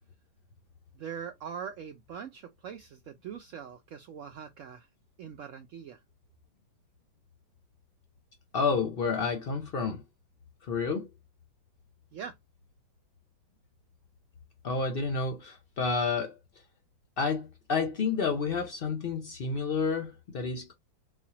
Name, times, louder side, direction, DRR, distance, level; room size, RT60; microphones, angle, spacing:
voice 1, 0.9-4.9 5.2-6.0 12.1-12.4, right 7 dB, 85° right, 0.6 m, -42 dB
voice 2, 8.5-10.0 10.6-11.1 14.6-16.4 17.2-20.7, left 4 dB, 85° left, 0.5 m, -30 dB
4.2 x 2.5 x 2.8 m
omnidirectional pair, 1.9 m